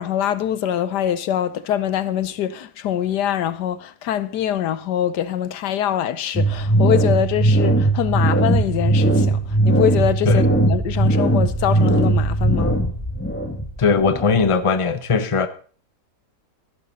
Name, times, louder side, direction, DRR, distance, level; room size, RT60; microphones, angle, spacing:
voice 1, 0.0-12.8, left 10 dB, 80° left, 1.3 m, -24 dB
sound 1, 6.3-14.5, right 2 dB, 5° left, 1.9 m, -19 dB
voice 2, 13.8-15.5, left 5 dB, 25° left, 0.8 m, -19 dB
15.5 x 11.5 x 4.1 m
omnidirectional pair, 1.8 m